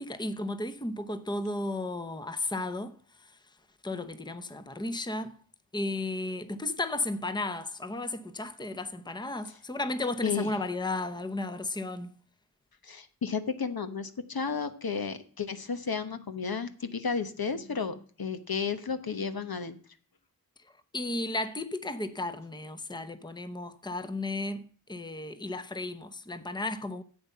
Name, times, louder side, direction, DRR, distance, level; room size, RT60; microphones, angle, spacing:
voice 1, 0.0-2.9 3.2-3.3 3.8-5.4 5.7-12.1 20.9-27.0, left 2 dB, 10° left, 0.8 m, -34 dB
voice 2, 12.8-19.8, left 5 dB, 70° left, 1.1 m, -33 dB
11.0 x 8.0 x 5.6 m
wide cardioid pair, 65°, 38 cm